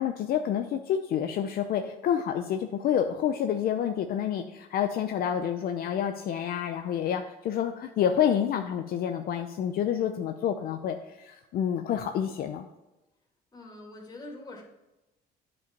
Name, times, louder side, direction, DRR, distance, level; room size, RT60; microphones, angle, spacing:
voice 1, 0.0-12.7, left 9 dB, 65° left, 6 dB, 0.6 m, -28 dB
voice 2, 13.5-14.6, left 2 dB, 25° left, -2 dB, 2.5 m, -44 dB
9.6 x 5.4 x 5.3 m, 0.99 s
cardioid pair, 110°, 17 cm